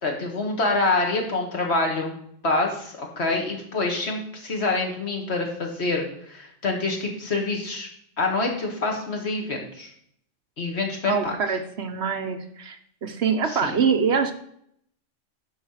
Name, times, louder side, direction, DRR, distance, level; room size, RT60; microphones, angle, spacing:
voice 1, 0.0-2.1 2.4-7.9 8.2-9.9 10.6-11.3 13.5-13.8, left 3 dB, 55° left, 1 dB, 2.1 m, -26 dB
voice 2, 11.0-14.3, right 6 dB, 55° right, 6 dB, 1.2 m, -24 dB
11.5 x 4.8 x 5.8 m, 0.68 s
omnidirectional pair, 1.4 m